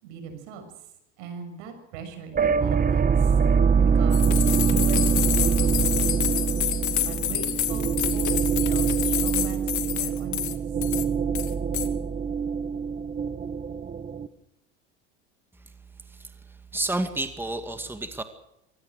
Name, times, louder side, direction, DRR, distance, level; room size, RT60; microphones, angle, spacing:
voice 1, 0.0-0.6 1.2-3.2 3.9-4.3 4.6-6.4 7.0-10.5, right 6 dB, 80° right, 7 dB, 6.6 m, -39 dB
sound 1, 2.3-14.3, right 6 dB, 25° right, 1.4 m, -24 dB
sound 2, 4.1-10.6 10.8-11.0 11.3-11.9, left 14 dB, 55° left, 2.5 m, -28 dB
voice 2, 16.7-18.2, right 2 dB, 5° right, 7 dB, 2.2 m, -29 dB
25.0 x 19.0 x 6.6 m, 0.83 s
supercardioid pair, 95°, 35 cm